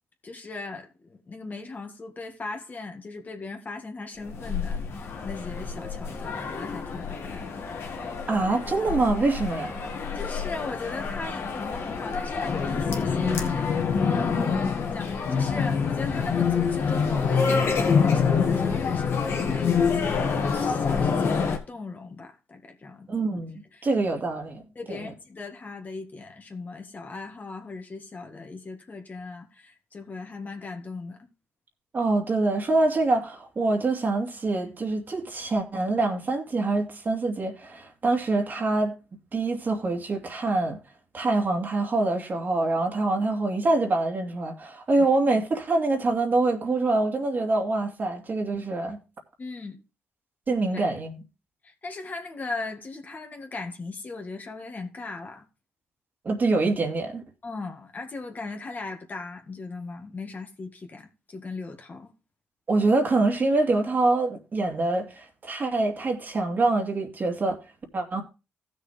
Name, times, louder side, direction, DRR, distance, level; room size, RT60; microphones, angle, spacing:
voice 1, 0.2-7.6 10.1-23.1 23.7-23.8 24.8-31.3 45.0-45.1 49.4-49.8 50.7-50.9 51.6-55.5 57.4-62.1, left 3 dB, 40° left, 2.0 m, -38 dB
sound 1, 4.2-21.6, left 6 dB, 65° left, 1.9 m, -26 dB
voice 2, 8.3-9.8 23.1-24.6 24.9-25.0 31.9-38.9 39.3-40.8 41.1-49.0 50.5-51.2 56.2-57.2 62.7-67.6 67.9-68.2, right 2 dB, 45° right, 2.6 m, -25 dB
15.0 x 6.4 x 3.4 m
supercardioid pair, 60°, 4 cm